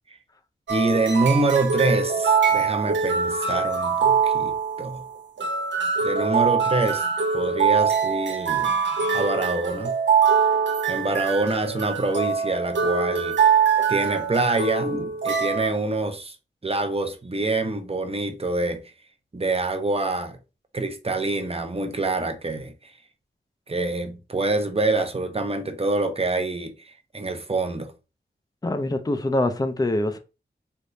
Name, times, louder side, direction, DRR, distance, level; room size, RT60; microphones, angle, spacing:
voice 1, 0.7-4.5 4.8-5.0 6.0-7.0 7.3-8.7 9.1-9.9 10.9-13.4 13.9-16.4 16.6-18.8 19.3-20.4 20.7-22.7 23.7-26.7 27.1-27.9, right 2 dB, 30° right, 0.7 m, -25 dB
sound 1, 0.7-15.7, right 6 dB, 70° right, 0.7 m, -23 dB
voice 2, 28.6-30.2, left 1 dB, 20° left, 0.5 m, -24 dB
3.4 x 2.9 x 2.7 m
cardioid pair, 40°, 19 cm